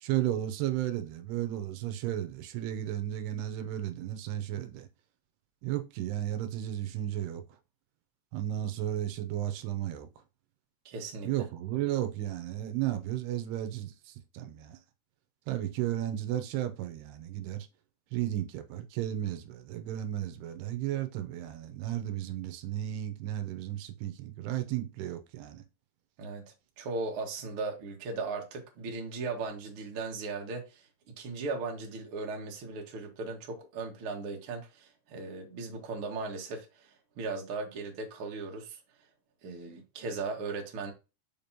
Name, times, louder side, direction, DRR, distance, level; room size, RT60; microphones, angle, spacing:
voice 1, 0.0-4.9 5.6-7.4 8.3-10.1 11.2-14.8 15.5-17.7 18.1-25.6, right 12 dB, 85° right, 2.8 m, -34 dB
voice 2, 10.8-11.3 26.2-26.4 26.8-30.9 31.2-38.8 39.4-40.9, right 3 dB, 55° right, 1.5 m, -37 dB
6.8 x 5.2 x 2.9 m
omnidirectional pair, 4.8 m